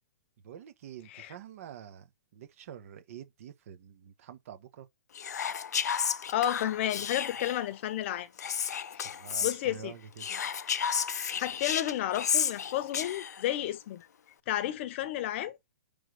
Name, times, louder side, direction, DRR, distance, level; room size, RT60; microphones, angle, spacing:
voice 1, 0.4-4.9 9.0-10.3, right 9 dB, 55° right, 1.3 m, -47 dB
Whispering, 5.1-7.7 8.4-9.6 10.2-13.5, left 7 dB, 80° left, 0.5 m, -32 dB
voice 2, 6.1-8.3 8.9-9.1 9.4-9.9 11.4-14.1 14.5-15.6, left 12 dB, 45° left, 0.8 m, -32 dB
5.4 x 3.5 x 5.4 m
hypercardioid pair, 135°, 9 cm